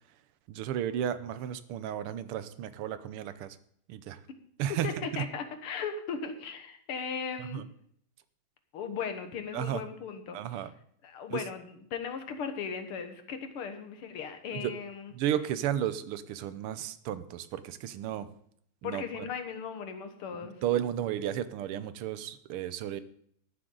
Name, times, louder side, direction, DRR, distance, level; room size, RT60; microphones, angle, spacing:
voice 1, 0.5-3.6 3.9-4.2 4.6-5.2 7.4-7.6 9.5-9.8 10.3-10.7 11.3-11.4 14.5-14.7 15.1-18.3 18.8-19.3 20.6-23.0, right 10 dB, 85° right, 14 dB, 1.6 m, -33 dB
voice 2, 4.8-7.6 8.7-10.6 11.0-15.1 18.8-20.6, left 6 dB, 80° left, 7 dB, 2.2 m, -37 dB
13.0 x 11.5 x 3.9 m, 0.65 s
omnidirectional pair, 2.4 m